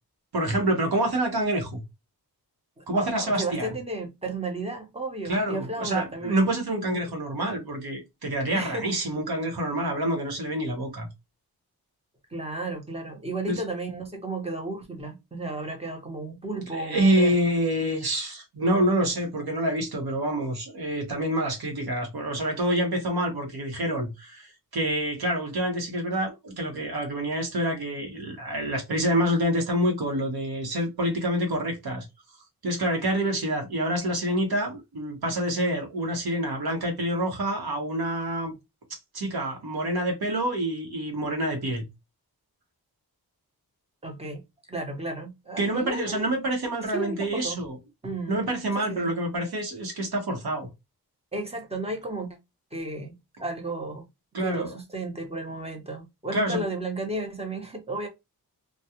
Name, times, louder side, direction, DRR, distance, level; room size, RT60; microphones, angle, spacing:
voice 1, 0.3-1.8 2.9-3.7 5.2-11.1 13.5-13.6 16.7-32.0 32.6-38.5 39.1-41.8 45.6-47.8 48.3-50.7 54.3-54.8 56.3-56.6, right 1 dB, 75° right, 1.0 m, -27 dB
voice 2, 2.8-6.4 8.5-8.9 12.3-17.3 44.0-44.4 44.7-46.3 46.9-47.6 48.0-48.4 48.8-49.1 51.3-52.4 52.7-54.0 54.4-58.1, right 2 dB, 15° right, 0.8 m, -33 dB
2.3 x 2.2 x 2.8 m
wide cardioid pair, 95°, 38 cm